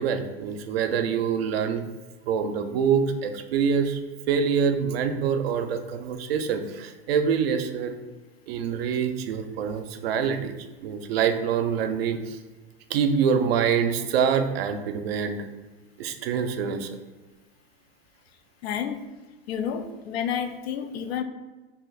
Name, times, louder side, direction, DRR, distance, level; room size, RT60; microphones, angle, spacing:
voice 1, 0.0-1.8 2.3-4.0 4.3-7.9 8.5-10.6 10.8-12.4 12.9-15.4 16.0-17.0, right 7 dB, 75° right, 7 dB, 0.5 m, -25 dB
voice 2, 18.6-19.0 19.5-21.2, left 8 dB, 85° left, 9 dB, 0.5 m, -30 dB
2.7 x 2.5 x 3.9 m, 1.2 s
hypercardioid pair, 110°, 30 cm